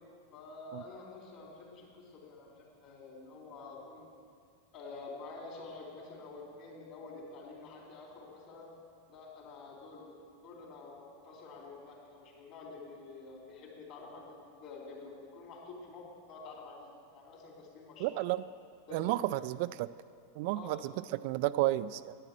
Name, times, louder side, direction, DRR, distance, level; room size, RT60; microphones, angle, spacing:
voice 1, 0.3-4.1 4.7-8.7 9.1-10.2 10.4-18.2 18.9-19.4 20.5-20.9, left 3 dB, 45° left, -1 dB, 3.7 m, -48 dB
voice 2, 18.0-18.4 18.9-19.9 20.4-22.2, right 16 dB, 50° right, 15 dB, 0.3 m, -32 dB
11.0 x 9.9 x 7.4 m, 2.3 s
figure-of-eight pair, 85°, 0 cm